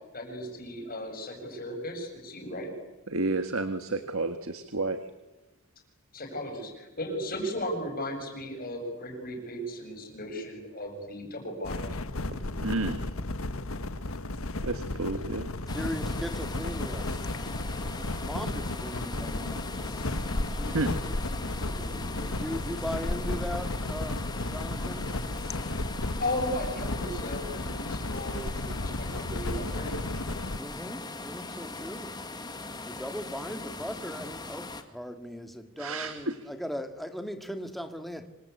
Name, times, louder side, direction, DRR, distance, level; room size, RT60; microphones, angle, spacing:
voice 1, 0.1-2.7 6.1-12.0 26.2-29.9, left 1 dB, 40° left, 7.6 m, -36 dB
voice 2, 3.1-5.1 12.6-13.0 14.6-15.5 20.6-20.9 35.8-36.4, right 2 dB, 70° right, 1.6 m, -31 dB
sound 1, 11.6-30.6, left 2 dB, 70° left, 1.4 m, -34 dB
sound 2, 12.3-13.1 15.1-16.2 18.4-19.1 21.7-22.3, right 2 dB, 50° right, 4.2 m, -49 dB
sound 3, 15.7-34.8, left 3 dB, 20° left, 2.0 m, -40 dB
voice 3, 15.7-17.1 18.0-25.1 30.5-32.2 32.8-38.3, equal, ahead, 2.1 m, -39 dB
27.0 x 25.5 x 8.4 m
head